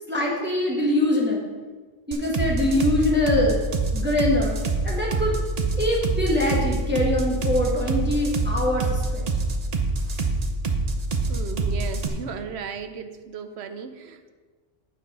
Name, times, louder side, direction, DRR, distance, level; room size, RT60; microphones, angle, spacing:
voice 1, 0.1-1.5 2.1-3.6 3.9-5.3 5.8-9.3, left 1 dB, 10° right, -3 dB, 1.4 m, -23 dB
sound 1, 2.1-12.1, right 3 dB, 40° right, 0.8 m, -25 dB
voice 2, 11.3-14.3, right 6 dB, 75° right, 9 dB, 0.9 m, -35 dB
8.3 x 6.9 x 5.3 m, 1.4 s
omnidirectional pair, 1.1 m